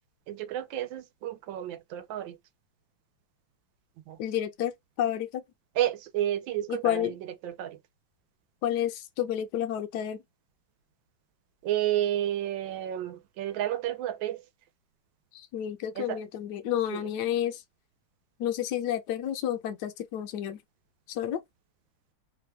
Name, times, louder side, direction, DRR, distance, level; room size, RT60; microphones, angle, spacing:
voice 1, 0.3-2.4 4.1-4.2 5.7-7.8 11.6-14.4 15.9-16.2 16.9-17.1, right 12 dB, 90° right, 1.4 m, -31 dB
voice 2, 4.2-4.7 5.0-5.4 6.7-7.1 8.6-10.2 15.3-17.6 18.4-20.6 21.1-21.4, left 11 dB, 70° left, 1.0 m, -30 dB
3.3 x 2.2 x 3.2 m
omnidirectional pair, 2.1 m